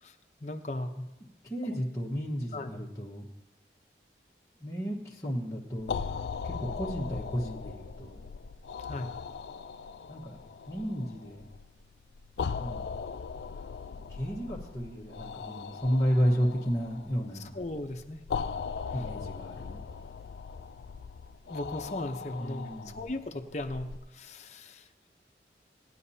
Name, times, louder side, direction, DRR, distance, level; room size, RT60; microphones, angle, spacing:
voice 1, 0.0-1.0 2.5-2.7 8.8-9.1 14.1-14.2 17.4-18.2 21.5-25.1, left 1 dB, 40° left, 5 dB, 0.8 m, -37 dB
voice 2, 1.4-3.2 4.6-8.2 10.1-10.4 10.7-11.4 12.6-12.9 14.1-17.5 18.9-19.8 22.4-23.0, equal, 15° left, -7 dB, 1.3 m, -32 dB
sound 1, 5.8-24.0, left 5 dB, 70° left, 0.4 m, -39 dB
19.0 x 9.9 x 2.8 m, 1.0 s
head